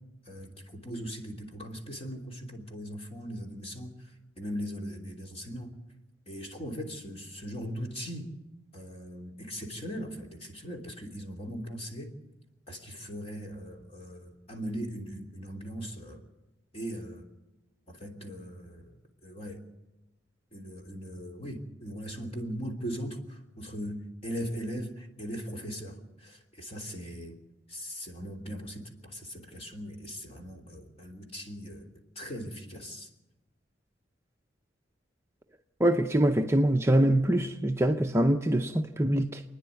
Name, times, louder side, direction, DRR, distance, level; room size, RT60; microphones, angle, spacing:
voice 1, 0.3-4.0 4.4-5.7 6.3-8.3 8.7-12.1 12.7-16.2 16.7-17.3 17.9-18.9 19.2-19.6 20.5-27.4 27.7-31.9 32.1-33.1, equal, 35° left, 3.1 m, -39 dB
voice 2, 35.8-39.4, right 1 dB, 15° right, 0.6 m, -24 dB
27.5 x 10.0 x 9.5 m
head